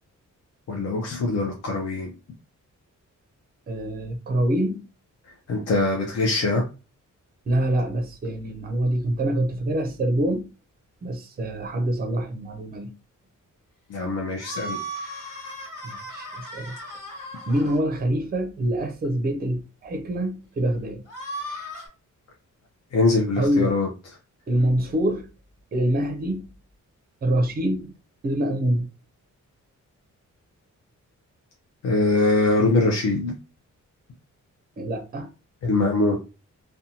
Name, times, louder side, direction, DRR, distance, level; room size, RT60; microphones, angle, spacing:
voice 1, 0.7-2.1 5.5-6.6 13.9-14.8 22.9-23.9 31.8-33.4 35.6-36.2, left 2 dB, 55° left, 0.6 m, -22 dB
voice 2, 3.7-4.8 7.5-10.5 11.0-12.9 15.8-16.7 17.5-21.0 23.4-23.7 24.5-25.3 25.7-26.5 27.2-27.9 28.2-28.9 34.8-35.3, right 1 dB, 30° right, 0.5 m, -25 dB
sound 1, 14.4-17.8 21.1-21.9, right 1 dB, 75° left, 1.2 m, -36 dB
2.6 x 2.2 x 2.7 m
wide cardioid pair, 170°, 31 cm